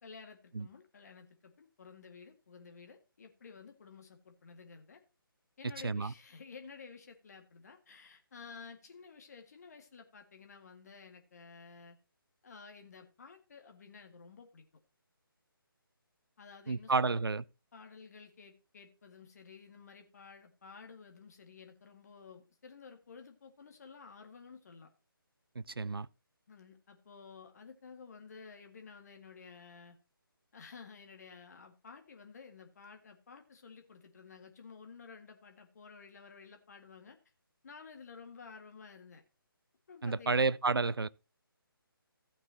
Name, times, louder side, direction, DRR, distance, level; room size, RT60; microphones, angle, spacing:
voice 1, 0.0-5.0 5.6-12.0 12.4-14.6 16.4-17.3 17.7-24.9 26.5-30.0 30.5-37.2 37.6-39.2 39.9-40.6, left 5 dB, 45° left, 1.8 m, -53 dB
voice 2, 16.7-17.4 25.6-26.1 40.0-41.1, right 4 dB, 75° right, 0.5 m, -31 dB
15.5 x 8.7 x 2.8 m
figure-of-eight pair, 145°, 12 cm